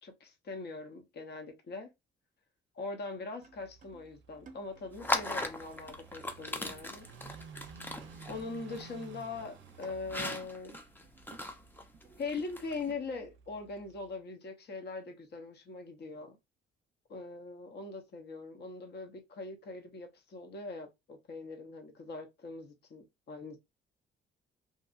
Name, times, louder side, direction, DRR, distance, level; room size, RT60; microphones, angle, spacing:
voice 1, 0.0-1.9 2.7-7.1 8.3-10.8 12.2-16.4 17.1-23.6, left 3 dB, 55° left, 0.9 m, -42 dB
sound 1, 3.2-8.3 8.6-8.7 9.1-9.5 9.8-11.5 11.9-13.4, right 5 dB, 40° right, 0.7 m, -59 dB
Car passing by / Idling, 3.5-14.2, right 6 dB, 75° right, 0.4 m, -54 dB
sound 2, 4.9-12.9, left 1 dB, 10° left, 0.5 m, -39 dB
2.7 x 2.6 x 2.4 m
cardioid pair, 90°, 20 cm